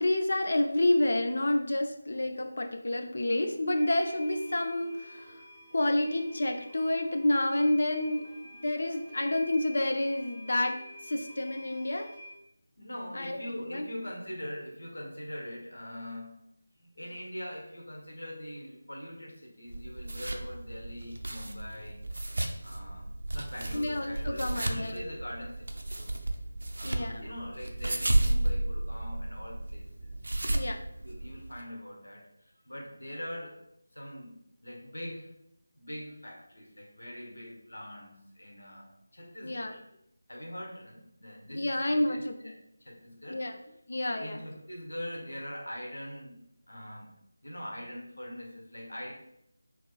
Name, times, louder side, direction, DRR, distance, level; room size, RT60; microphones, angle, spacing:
voice 1, 0.0-5.4 5.7-8.3 8.6-10.8 11.1-12.1 13.1-13.9 23.7-25.1 26.8-27.3 30.5-30.8 39.4-39.7 41.5-42.5 43.3-43.5 43.9-44.4, left 1 dB, 50° left, 5 dB, 0.4 m, -29 dB
sound 1, 3.7-12.3, equal, 10° right, 0.6 m, -49 dB
voice 2, 12.8-16.4 16.8-22.0 22.6-26.2 26.8-30.2 31.0-33.6 33.9-35.3 35.7-39.8 40.3-42.5 42.8-43.4 44.1-47.1 47.4-49.1, equal, 65° left, -1 dB, 1.1 m, -43 dB
sound 2, 19.7-31.6, right 1 dB, 55° right, 0.5 m, -33 dB
4.4 x 3.0 x 2.3 m, 0.77 s
figure-of-eight pair, 160°, 0 cm